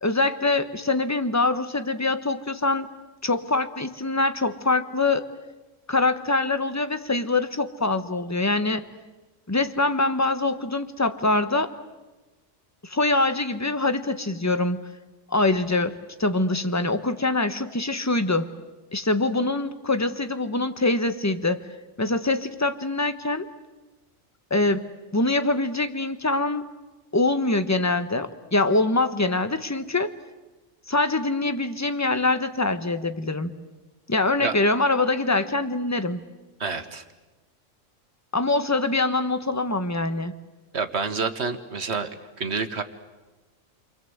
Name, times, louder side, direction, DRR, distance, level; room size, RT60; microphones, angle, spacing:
voice 1, 0.0-2.9 3.2-5.3 5.9-8.8 9.5-11.7 12.8-14.8 15.3-18.5 18.9-21.6 22.0-23.5 24.5-26.7 27.1-30.1 30.9-33.5 34.1-36.2 38.3-40.4, left 2 dB, 15° left, 10 dB, 1.1 m, -24 dB
voice 2, 36.6-37.0 40.7-42.1 42.4-42.8, right 4 dB, 55° right, 9 dB, 1.8 m, -28 dB
29.5 x 23.5 x 8.0 m, 1.2 s
omnidirectional pair, 1.3 m